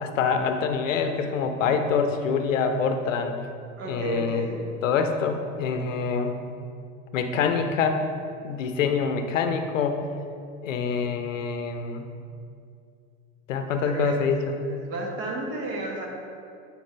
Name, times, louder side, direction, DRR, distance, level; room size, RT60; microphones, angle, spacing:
voice 1, 0.0-3.4 3.9-4.5 4.8-6.3 7.1-8.0 8.4-10.0 10.6-12.1 13.5-14.6, left 5 dB, 80° left, 7 dB, 0.8 m, -25 dB
voice 2, 3.8-4.6 13.8-14.2 14.6-16.1, right 1 dB, 35° right, 0 dB, 1.5 m, -32 dB
8.6 x 4.9 x 3.3 m, 2.4 s
hypercardioid pair, 85°, 38 cm